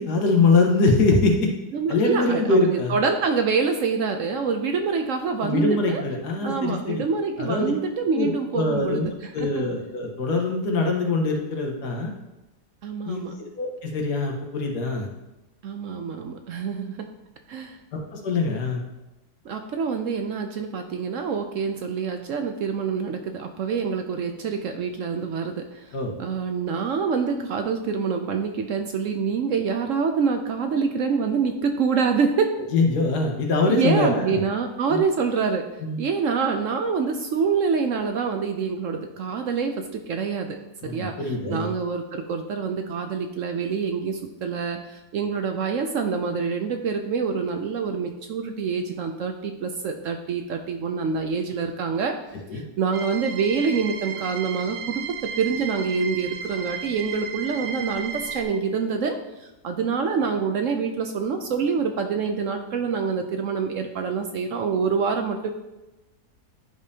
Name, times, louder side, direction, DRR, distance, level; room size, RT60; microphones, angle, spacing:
voice 1, 0.0-1.5 1.9-3.0 5.4-7.0 7.4-7.7 8.2-12.1 13.1-13.2 13.6-15.1 17.9-18.9 25.9-26.1 32.7-34.4 34.9-35.0 35.8-36.0 40.8-41.7 52.5-52.6, left 3 dB, 80° left, 2 dB, 1.7 m, -23 dB
voice 2, 1.7-6.0 6.4-9.6 12.8-13.3 15.6-17.1 17.5-17.8 19.4-25.9 26.2-32.5 33.7-35.6 36.0-41.2 41.5-52.2 52.5-55.1 55.4-65.5, right 5 dB, 65° right, 5 dB, 0.8 m, -26 dB
sound 1, 52.9-58.4, right 7 dB, 85° right, 1.4 m, -34 dB
10.5 x 5.1 x 2.8 m, 1.0 s
omnidirectional pair, 1.7 m